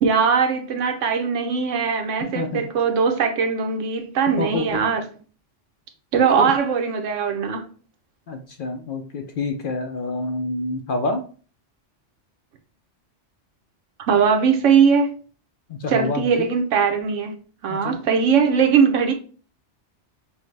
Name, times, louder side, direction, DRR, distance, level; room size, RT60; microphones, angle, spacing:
voice 1, 0.0-5.0 6.1-7.7 14.1-15.2 15.9-17.3 17.6-19.1, right 6 dB, 80° right, 1.1 m, -20 dB
voice 2, 2.2-2.6 4.4-4.8 6.4-6.5 8.3-11.2 15.7-16.4 17.7-18.0, left 3 dB, 60° left, 0.6 m, -28 dB
6.0 x 2.1 x 3.2 m
omnidirectional pair, 1.3 m